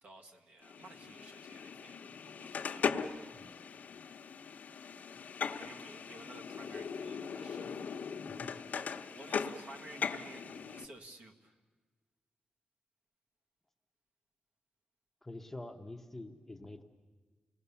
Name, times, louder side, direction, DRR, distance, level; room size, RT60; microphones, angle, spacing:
voice 1, 0.0-2.9 5.2-8.3 8.7-11.6, right 2 dB, 50° right, 3 dB, 1.8 m, -54 dB
sound 1, 0.6-10.9, left 6 dB, 65° left, 1.0 m, -39 dB
voice 2, 3.3-3.6 8.3-8.6 15.2-16.8, left 2 dB, 10° left, 4 dB, 1.0 m, -47 dB
29.0 x 19.5 x 7.0 m, 1.4 s
wide cardioid pair, 175°, 3 cm